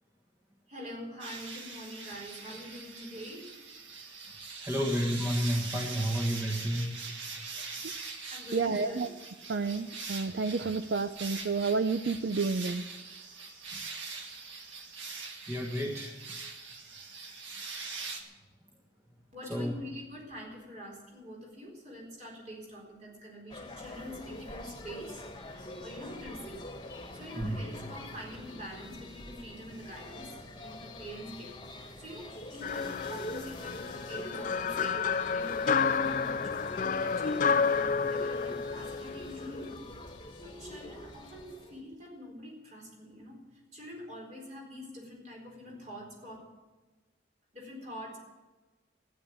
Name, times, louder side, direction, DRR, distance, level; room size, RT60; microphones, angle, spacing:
voice 1, 0.7-3.5 8.3-9.0 19.3-25.2 25.8-26.6 27.1-30.3 30.6-39.8 40.4-43.4 43.7-46.4 47.5-48.2, equal, 40° right, -1 dB, 4.2 m, -45 dB
sound 1, 1.2-18.2, right 4 dB, 75° right, 1.9 m, -42 dB
voice 2, 4.6-7.0 13.7-13.8 15.5-16.1 19.4-19.7 27.4-27.6, equal, 15° right, -1 dB, 1.5 m, -31 dB
voice 3, 8.5-9.1 9.5-12.8, right 4 dB, 55° right, 10 dB, 0.5 m, -30 dB
sound 2, 23.5-41.8, left 1 dB, 25° left, 1.6 m, -44 dB
sound 3, 32.6-39.8, left 5 dB, 40° left, 0.4 m, -30 dB
13.0 x 10.0 x 8.7 m, 1.2 s
head